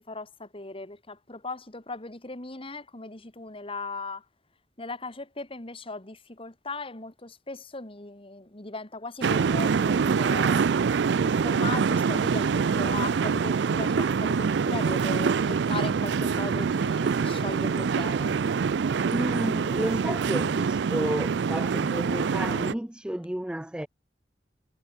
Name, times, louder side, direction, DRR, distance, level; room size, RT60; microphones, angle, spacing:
voice 1, 0.0-4.2 4.8-10.7 11.2-18.4, left 3 dB, 30° left, 2.3 m, -38 dB
sound 1, 9.2-22.7, right 5 dB, 75° right, 0.4 m, -25 dB
voice 2, 19.1-23.9, right 1 dB, 5° right, 0.4 m, -32 dB
head